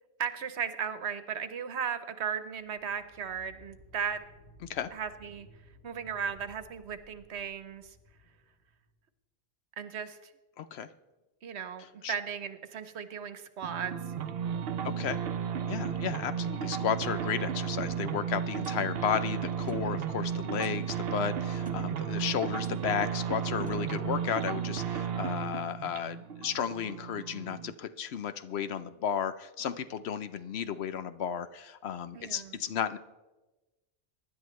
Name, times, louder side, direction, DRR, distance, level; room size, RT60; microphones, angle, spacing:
voice 1, 0.2-4.2 4.9-5.5 5.8-8.0 9.8-10.3 11.4-13.9 32.1-32.6, right 7 dB, 85° right, 11 dB, 1.2 m, -36 dB
sound 1, 2.6-9.0, left 1 dB, 30° left, 4.0 m, -58 dB
voice 2, 10.6-10.9 12.0-12.1 14.8-15.2 15.7-33.0, left 8 dB, 75° left, 11 dB, 0.9 m, -33 dB
sound 2, 13.6-27.7, right 8 dB, 65° right, 0.9 m, -34 dB
Clock, 18.6-18.9 19.7-19.9 20.6-20.9 21.7-21.9 22.6-22.8 23.6-23.9, right 2 dB, 10° right, 1.1 m, -55 dB
24.0 x 11.0 x 3.2 m, 1.1 s
omnidirectional pair, 1.1 m